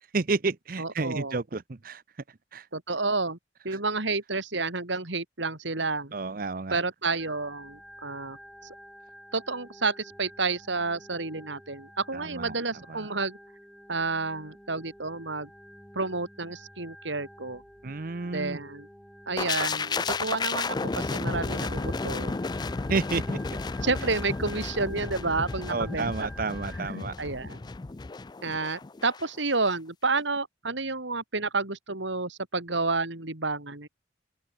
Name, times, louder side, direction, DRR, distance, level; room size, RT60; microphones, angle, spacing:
voice 1, 0.1-2.0 2.5-2.6 6.1-6.8 12.1-12.6 12.9-13.1 17.8-18.6 22.9-23.2 25.7-27.1, right 3 dB, 50° right, 0.7 m, -30 dB
voice 2, 0.8-1.4 2.7-3.4 3.6-6.1 6.7-8.4 9.3-13.4 13.9-15.5 15.9-17.6 18.2-18.9 19.3-22.3 23.8-26.5 27.2-27.6 28.4-33.9, right 3 dB, 80° right, 3.1 m, -30 dB
Organ, 7.2-26.9, equal, ahead, 3.7 m, -50 dB
sound 1, 19.4-29.2 29.5-29.7, left 4 dB, 20° left, 0.4 m, -32 dB
open air
head